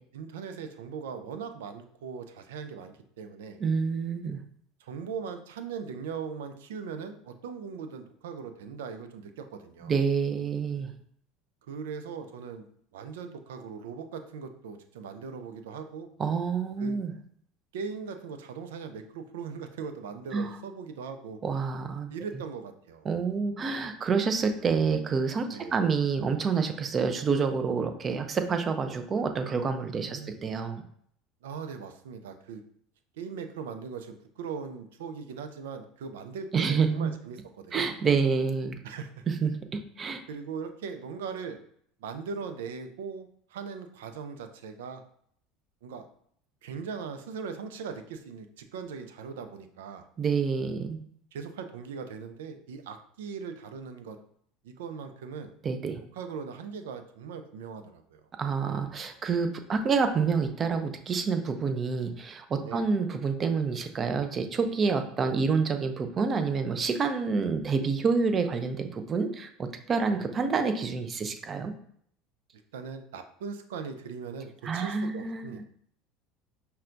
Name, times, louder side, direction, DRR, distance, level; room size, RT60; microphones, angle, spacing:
voice 1, 0.1-3.6 4.8-10.0 11.7-12.6 12.9-16.1 16.8-17.0 17.7-21.4 22.1-23.1 25.4-25.8 30.0-30.3 31.4-32.6 33.2-37.8 38.8-39.1 40.3-41.6 42.0-45.0 45.8-46.0 46.6-50.0 51.3-54.2 54.6-55.5 56.1-58.2 62.6-62.9 70.1-70.6 72.7-75.6, right 6 dB, 85° right, 8 dB, 0.4 m, -39 dB
voice 2, 3.6-4.4 9.8-10.9 16.2-17.1 20.3-20.5 21.4-22.1 23.1-30.8 36.5-37.1 37.7-38.8 39.3-40.2 50.2-51.0 55.6-56.0 58.4-71.7 74.6-75.6, right 5 dB, 35° right, 8 dB, 0.5 m, -28 dB
5.5 x 2.2 x 2.6 m, 0.65 s
hypercardioid pair, 90°, 0 cm